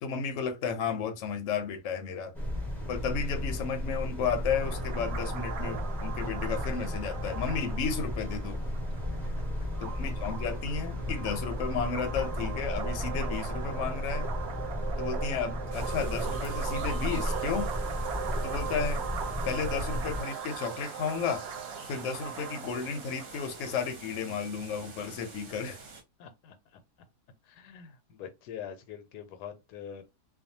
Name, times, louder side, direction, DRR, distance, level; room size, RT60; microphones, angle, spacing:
voice 1, 0.0-2.3 2.9-8.6 9.8-14.3 15.0-17.7 18.4-19.0 19.4-21.4 21.9-25.8, left 6 dB, 65° left, 0.8 m, -33 dB
sound 1, 2.3-20.2, left 1 dB, ahead, 0.4 m, -34 dB
sound 2, 4.5-23.8, right 7 dB, 75° right, 0.6 m, -39 dB
sound 3, 15.7-26.0, right 4 dB, 55° right, 0.9 m, -47 dB
voice 2, 26.2-26.8 27.4-30.0, left 8 dB, 85° left, 1.1 m, -44 dB
2.5 x 2.3 x 2.7 m
omnidirectional pair, 1.7 m